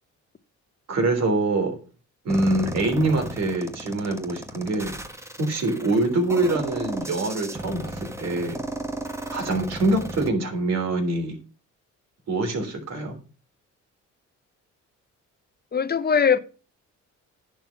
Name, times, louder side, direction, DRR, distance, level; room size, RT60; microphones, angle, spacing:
voice 1, 0.9-1.7 2.2-5.0 5.4-8.6 9.3-11.4 12.3-13.1, right 2 dB, 60° right, 3.4 m, -24 dB
sound 1, 2.3-10.3, right 1 dB, 10° right, 1.2 m, -34 dB
voice 2, 15.7-16.4, left 6 dB, 30° left, 0.9 m, -20 dB
10.5 x 4.5 x 7.0 m
cardioid pair, 90°, 30 cm